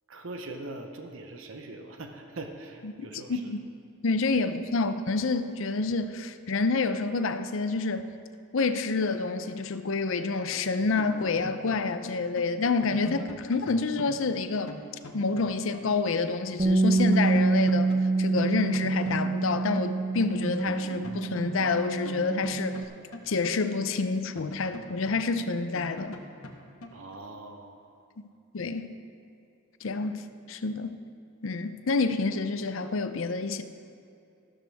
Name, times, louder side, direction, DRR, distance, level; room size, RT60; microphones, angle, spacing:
voice 1, 0.1-3.5 4.3-4.4 26.9-27.8, right 2 dB, 70° right, 0.8 m, -42 dB
voice 2, 2.8-3.6 4.0-8.1 8.5-14.7 15.1-17.9 18.2-22.8 23.3-26.1 28.5-28.9 29.8-31.0 31.4-33.6, left 4 dB, 65° left, 0.5 m, -28 dB
sound 1, 10.5-16.3 16.5-16.6 17.0-19.9 20.2-24.0 24.4-27.1, left 1 dB, 85° left, 1.1 m, -42 dB
Bass guitar, 16.6-22.8, right 3 dB, 40° right, 0.8 m, -26 dB
14.5 x 12.5 x 3.5 m
head